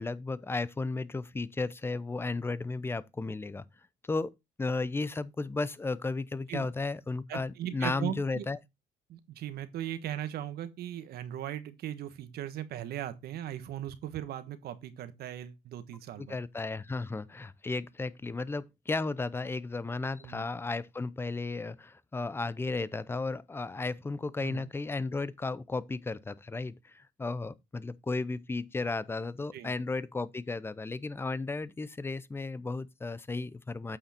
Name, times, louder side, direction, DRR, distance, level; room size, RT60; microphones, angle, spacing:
voice 1, 0.0-3.6 4.1-4.3 4.6-8.6 16.2-34.0, left 3 dB, 15° left, 0.6 m, -34 dB
voice 2, 7.3-8.4 9.1-16.4 20.2-20.5 24.4-24.7 29.5-29.7, right 11 dB, 70° right, 1.4 m, -38 dB
8.8 x 5.6 x 4.3 m
cardioid pair, 110°, 17 cm